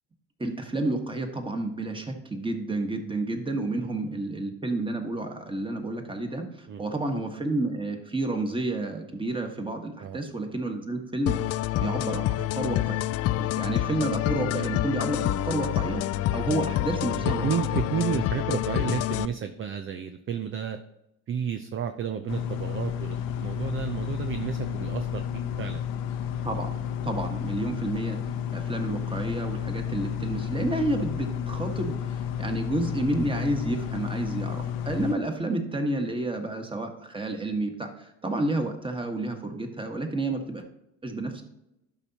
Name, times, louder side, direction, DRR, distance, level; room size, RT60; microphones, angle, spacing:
voice 1, 0.4-11.4 11.8-13.0 13.4-16.0 16.3-17.4 26.4-26.7 27.0-40.6 41.0-41.4, right 2 dB, 15° right, 4 dB, 1.5 m, -30 dB
sound 1, 11.3-19.3, left 14 dB, 40° left, 0.4 m, -27 dB
voice 2, 17.2-20.8 21.3-25.2 25.6-25.9, right 8 dB, 30° right, 8 dB, 0.6 m, -31 dB
sound 2, 22.3-35.1, left 9 dB, 60° left, 0.8 m, -32 dB
12.0 x 5.5 x 2.9 m, 0.85 s
hypercardioid pair, 65°, 39 cm